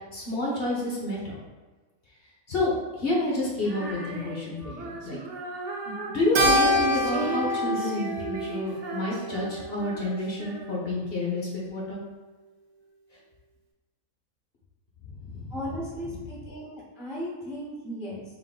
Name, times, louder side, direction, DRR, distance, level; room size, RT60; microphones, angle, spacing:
voice 1, 0.1-1.4 2.5-5.2 6.1-12.0 15.3-15.6, left 2 dB, 50° left, -4 dB, 0.9 m, -29 dB
Female singing, 3.6-11.0, right 3 dB, 65° right, 0.9 m, -36 dB
Keyboard (musical), 6.4-10.9, equal, 85° right, 1.2 m, -27 dB
voice 2, 15.5-18.2, equal, 5° right, -5 dB, 0.4 m, -36 dB
3.6 x 2.6 x 3.8 m, 1.2 s
omnidirectional pair, 1.5 m